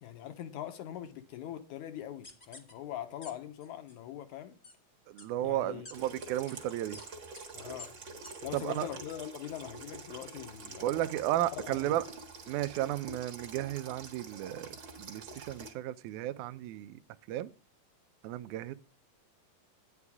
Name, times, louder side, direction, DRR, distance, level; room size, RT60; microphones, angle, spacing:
voice 1, 0.0-4.6 5.4-6.3 7.5-7.9 8.4-11.0 11.5-12.0, left 11 dB, 70° left, 2.0 m, -42 dB
sound 1, 2.2-2.7 3.2-3.3 3.6-4.0 4.6-4.7 5.2-5.3 5.9-6.0 6.5-6.6 6.9-7.1 7.3-7.5 7.8-7.9 8.2-8.3 8.8-8.9, left 3 dB, 55° left, 0.5 m, -49 dB
voice 2, 5.1-7.0 8.5-8.9 10.8-12.0 12.5-17.0 17.3-17.5 18.2-18.7, right 14 dB, 85° right, 1.7 m, -34 dB
Water tap faucet / Sink (filling or washing), 5.9-15.7, right 3 dB, 45° right, 1.5 m, -47 dB
11.0 x 9.7 x 3.6 m
omnidirectional pair, 4.2 m